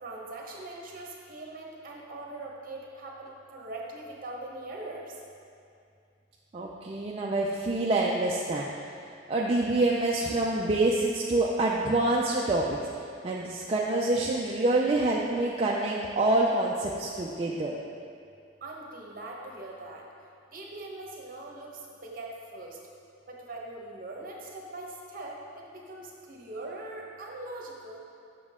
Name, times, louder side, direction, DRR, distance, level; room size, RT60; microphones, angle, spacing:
voice 1, 0.0-5.0 18.6-20.0 20.5-21.7 22.0-22.8 23.3-25.3 25.7-28.0, right 2 dB, 45° right, -2 dB, 1.1 m, -41 dB
voice 2, 6.5-8.7 9.3-12.7 13.2-17.8, right 2 dB, 30° right, -3 dB, 0.4 m, -26 dB
7.6 x 6.0 x 3.6 m, 2.4 s
head